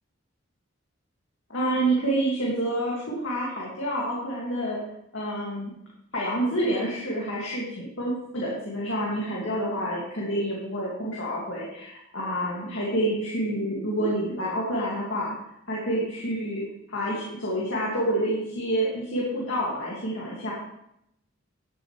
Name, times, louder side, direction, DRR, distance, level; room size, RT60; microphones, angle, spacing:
voice 1, 1.5-4.8 5.1-5.7 6.1-15.4 15.7-16.6 16.9-20.5, right 1 dB, 70° left, -5 dB, 2.1 m, -28 dB
12.0 x 7.8 x 3.2 m, 0.79 s
head